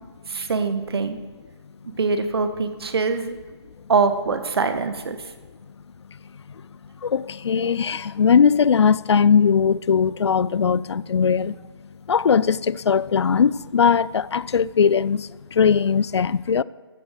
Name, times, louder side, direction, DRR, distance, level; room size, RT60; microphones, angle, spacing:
voice 1, 0.3-1.2 2.0-3.4 3.9-5.2, right 4 dB, 60° right, 1.3 m, -23 dB
voice 2, 7.0-11.6 12.1-16.6, left 6 dB, 75° left, 0.4 m, -19 dB
14.0 x 5.9 x 6.6 m
hypercardioid pair, 165°, 15 cm